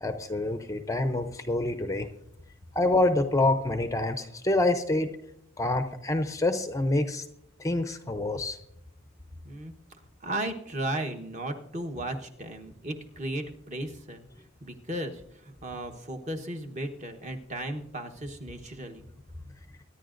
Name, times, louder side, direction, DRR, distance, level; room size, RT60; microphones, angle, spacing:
voice 1, 0.0-2.1 2.7-5.2 5.6-7.3 7.6-8.6, left 2 dB, 15° left, 8 dB, 0.5 m, -26 dB
voice 2, 9.4-9.7 10.2-14.3 14.6-19.0, right 1 dB, 35° right, 5 dB, 1.0 m, -35 dB
23.0 x 10.0 x 2.5 m, 0.76 s
head